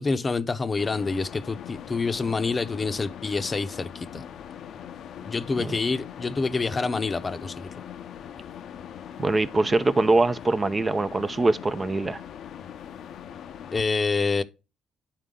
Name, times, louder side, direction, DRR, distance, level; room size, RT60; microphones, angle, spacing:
voice 1, 0.0-4.2 5.2-7.8 13.7-14.4, left 4 dB, 30° left, 0.7 m, -27 dB
sound 1, 0.8-13.8, left 9 dB, 70° left, 0.6 m, -41 dB
voice 2, 9.2-12.2, right 2 dB, 25° right, 0.5 m, -23 dB
9.8 x 4.4 x 3.8 m
cardioid pair, 90°, 0 cm